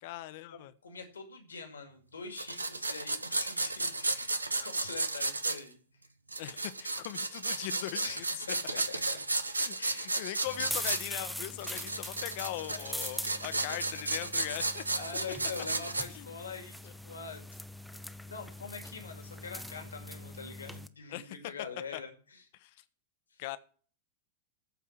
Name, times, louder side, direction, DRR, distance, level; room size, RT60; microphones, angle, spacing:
voice 1, 0.0-0.7 6.4-8.4 9.6-14.8 16.1-16.3 16.8-16.9 21.1-21.4 21.9-22.0 22.5-22.8 23.4-23.6, left 15 dB, 55° left, 14 dB, 0.9 m, -40 dB
voice 2, 0.5-5.8 7.9-9.2 9.8-10.2 12.7-12.8 14.9-17.4 17.9-22.4 23.3-23.4, left 5 dB, 80° left, 5 dB, 2.4 m, -44 dB
sound 1, 2.4-5.6 6.3-11.0 11.6-16.0, right 2 dB, 85° right, 0.8 m, -34 dB
sound 2, 10.5-20.9, left 1 dB, ahead, 0.7 m, -42 dB
14.0 x 4.9 x 7.1 m, 0.42 s
figure-of-eight pair, 95°, 0 cm